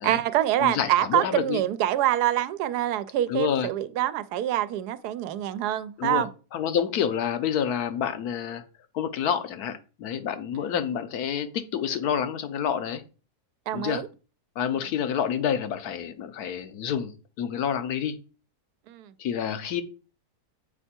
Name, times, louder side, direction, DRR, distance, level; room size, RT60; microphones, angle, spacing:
voice 1, 0.0-6.3 13.7-14.1 18.9-19.1, right 13 dB, 90° right, 1.1 m, -25 dB
voice 2, 0.6-1.6 3.3-3.7 6.0-6.2 6.5-8.6 8.9-13.0 13.7-14.0 14.6-18.2 19.2-19.8, left 8 dB, 75° left, 1.3 m, -28 dB
7.6 x 4.5 x 4.3 m
omnidirectional pair, 1.6 m